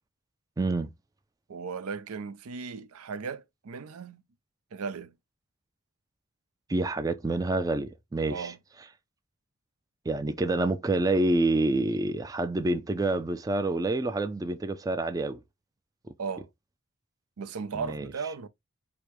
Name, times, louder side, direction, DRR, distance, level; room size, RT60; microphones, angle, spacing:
voice 1, 0.6-0.9 6.7-8.5 10.1-15.4 17.7-18.1, right 2 dB, 15° right, 0.3 m, -27 dB
voice 2, 1.5-4.2 4.7-5.1 8.3-8.6 16.2-16.5 17.4-18.5, right 5 dB, 80° right, 0.5 m, -36 dB
5.0 x 2.1 x 4.4 m
head